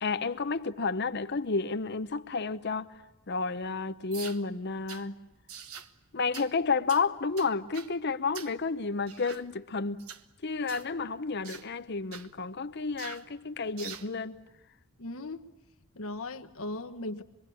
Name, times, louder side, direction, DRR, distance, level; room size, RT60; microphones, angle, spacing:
voice 1, 0.0-3.0 3.3-5.1 6.1-10.1 10.4-14.4, left 4 dB, 50° left, 0.8 m, -31 dB
sound 1, 4.1-4.4 4.9-5.1 5.5-5.9 6.3-6.5 6.9-7.1 7.4-7.9 8.3-8.6 9.1-9.4 10.0-10.2 10.7-10.9 11.4-11.7 12.1-12.3 13.0-13.3 13.8-14.1, right 7 dB, 85° right, 1.2 m, -44 dB
voice 2, 15.0-15.4 15.9-17.2, left 2 dB, 70° left, 1.3 m, -37 dB
25.5 x 23.5 x 8.5 m
head